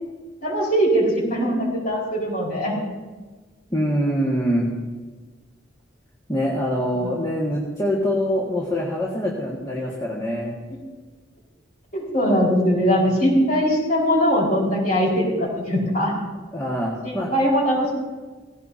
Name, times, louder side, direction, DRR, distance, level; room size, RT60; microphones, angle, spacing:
voice 1, 0.4-2.7 11.9-16.1 17.0-17.9, equal, 45° left, -4 dB, 4.9 m, -21 dB
voice 2, 3.7-4.7 6.3-10.5 16.5-17.3, equal, 20° left, -5 dB, 1.7 m, -24 dB
18.0 x 16.5 x 2.8 m, 1.3 s
head